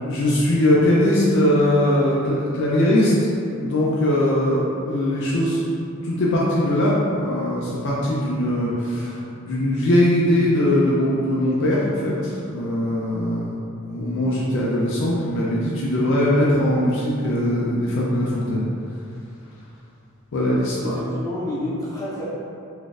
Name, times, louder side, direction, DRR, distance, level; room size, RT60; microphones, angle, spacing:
voice 1, 0.1-3.1 3.5-5.8 6.0-13.5 13.8-18.6 20.3-21.0, left 1 dB, 55° left, -5 dB, 0.4 m, -21 dB
voice 2, 20.7-22.2, left 1 dB, 15° left, -10 dB, 0.9 m, -29 dB
3.8 x 2.5 x 2.4 m, 2.5 s
head